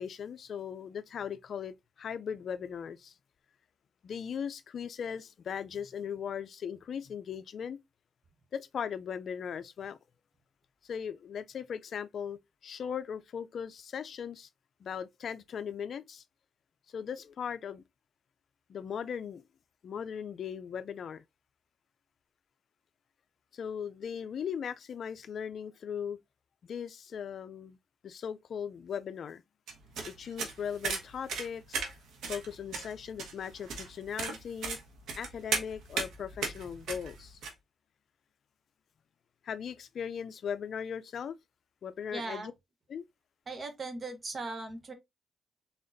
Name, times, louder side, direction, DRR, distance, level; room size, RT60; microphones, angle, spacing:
voice 1, 0.0-3.1 4.0-7.8 8.5-10.0 10.8-14.5 14.8-16.2 16.9-17.8 18.7-19.4 19.8-21.2 23.5-26.2 26.6-27.8 28.0-29.4 30.1-31.8 32.3-34.8 35.2-37.4 39.4-41.4 41.8-42.5 42.9-43.0, left 7 dB, 60° left, 0.4 m, -38 dB
sound 1, 29.7-37.5, right 5 dB, 85° right, 1.3 m, -36 dB
voice 2, 42.1-42.5 43.5-44.9, right 3 dB, 40° right, 1.1 m, -38 dB
4.0 x 3.7 x 2.6 m
cardioid pair, 90°, 0 cm